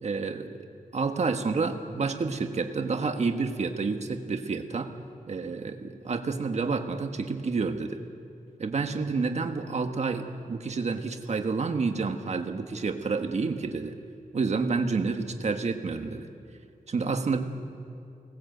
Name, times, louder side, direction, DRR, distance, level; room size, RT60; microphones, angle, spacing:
voice 1, 0.0-0.6 0.9-4.9 5.3-8.0 8.6-13.9 14.3-16.3 16.9-17.4, right 4 dB, 50° right, 6 dB, 1.4 m, -29 dB
24.0 x 19.0 x 7.9 m, 2.5 s
wide cardioid pair, 155°, 15 cm